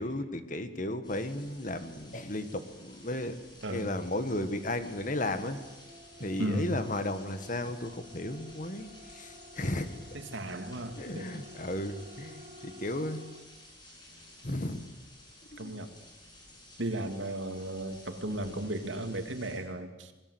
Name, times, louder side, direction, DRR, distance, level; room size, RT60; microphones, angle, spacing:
voice 1, 0.0-3.4 3.7-5.6 6.2-9.9 11.0-13.2 14.4-14.8 15.5-15.7, left 1 dB, 45° left, 9 dB, 1.8 m, -34 dB
sound 1, 1.0-19.6, left 1 dB, 25° left, 7.0 m, -54 dB
voice 2, 3.6-4.0 6.2-6.8 10.1-11.4 15.6-15.9 16.8-20.1, right 1 dB, 85° right, 6 dB, 2.6 m, -35 dB
sound 2, 4.4-13.5, equal, 35° right, 2.1 m, -53 dB
28.5 x 21.0 x 8.1 m, 1.1 s
head